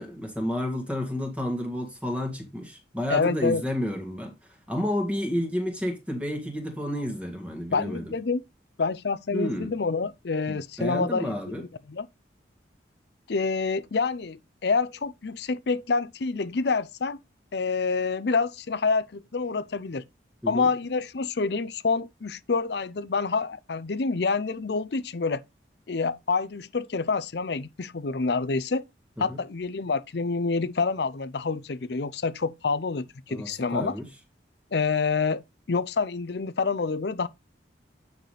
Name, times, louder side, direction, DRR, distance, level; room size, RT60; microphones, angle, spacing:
voice 1, 0.0-8.1 9.3-9.7 10.5-11.6 20.4-20.7 29.2-29.4 33.3-34.1, left 1 dB, 5° right, 1.7 m, -31 dB
voice 2, 3.1-3.6 7.7-8.4 8.8-12.1 13.3-17.2 17.5-20.0 20.5-25.4 25.9-28.8 29.2-33.9 34.7-37.3, left 4 dB, 65° left, 0.5 m, -27 dB
9.1 x 5.9 x 3.2 m
head